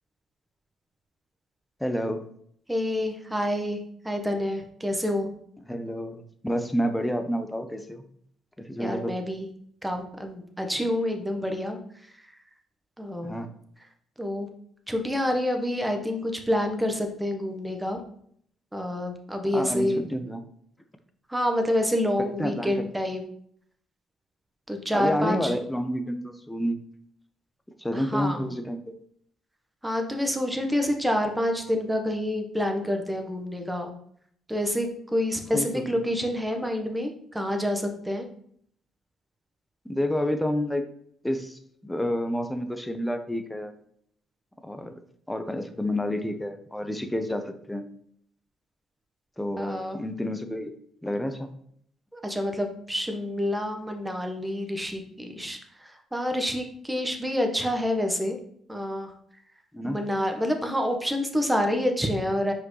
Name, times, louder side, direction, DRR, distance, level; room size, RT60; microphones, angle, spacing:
voice 1, 1.8-2.2 5.7-8.0 8.6-9.1 13.2-13.5 19.5-20.4 22.4-22.9 24.9-26.8 27.8-28.9 35.5-35.8 39.8-40.8 41.2-43.7 44.6-44.9 45.3-47.8 49.4-50.7 51.0-51.5 59.7-60.0, equal, 5° left, 7 dB, 1.0 m, -29 dB
voice 2, 2.7-3.8 4.0-5.3 8.8-9.5 9.8-11.8 13.0-13.3 14.2-14.5 14.9-18.0 18.7-20.0 21.3-23.2 24.7-25.5 27.9-28.4 29.8-33.9 34.5-38.3 49.6-50.0 52.1-55.6 56.1-58.4 58.7-59.1 59.8-62.5, left 1 dB, 10° right, 4 dB, 1.3 m, -27 dB
5.9 x 5.1 x 3.3 m, 0.66 s
hypercardioid pair, 55°, 0 cm